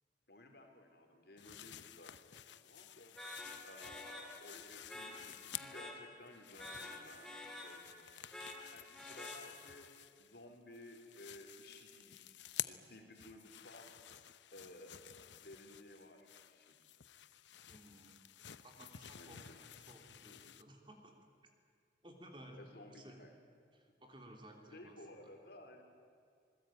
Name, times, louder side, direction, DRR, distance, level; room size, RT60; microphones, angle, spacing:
voice 1, 0.3-3.1 3.6-7.9 8.7-9.9 10.2-13.9 14.5-16.8 19.1-19.6 22.6-23.3 24.7-25.8, left 1 dB, 55° left, 4 dB, 3.8 m, -56 dB
sound 1, 1.4-5.9 6.3-10.4 10.7-20.6, left 12 dB, 70° left, 0.8 m, -51 dB
sound 2, 3.2-9.9, left 1 dB, 5° left, 3.0 m, -50 dB
voice 2, 17.6-21.1 22.0-22.6 22.9-23.2 23.7-25.0, right 1 dB, 25° right, 3 dB, 3.1 m, -57 dB
26.5 x 20.5 x 9.1 m, 2.2 s
head